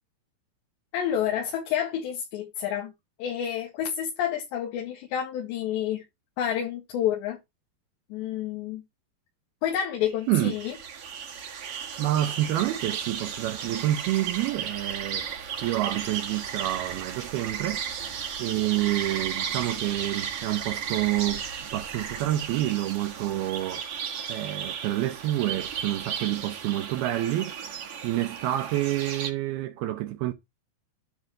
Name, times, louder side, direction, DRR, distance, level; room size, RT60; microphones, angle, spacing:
voice 1, 0.9-2.9 3.2-6.0 6.4-7.4 8.1-8.8 9.6-10.7, left 9 dB, 80° left, 4.0 m, -29 dB
sound 1, 9.8-29.3, right 7 dB, 60° right, 1.5 m, -35 dB
voice 2, 12.0-15.3 15.6-17.9 18.4-21.5 21.7-23.9 24.3-27.6 28.0-30.3, right 14 dB, 75° right, 2.4 m, -28 dB
10.0 x 4.0 x 6.5 m
omnidirectional pair, 5.1 m